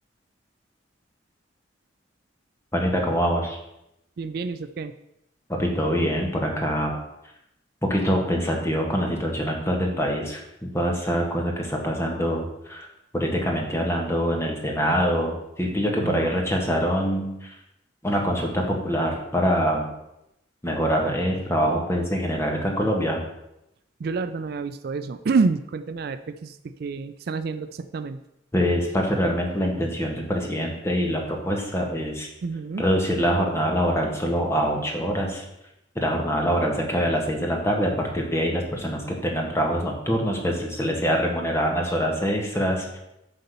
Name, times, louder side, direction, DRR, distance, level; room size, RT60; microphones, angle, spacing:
voice 1, 2.7-3.6 5.5-7.0 7.8-12.9 13.1-17.6 18.0-19.9 20.6-23.2 28.5-32.3 32.8-35.4 35.9-43.0, equal, 15° left, 1 dB, 1.4 m, -24 dB
voice 2, 4.2-4.9 16.0-16.4 24.0-28.2 32.4-32.8, right 4 dB, 55° right, 11 dB, 0.3 m, -28 dB
7.8 x 4.2 x 6.7 m, 0.86 s
head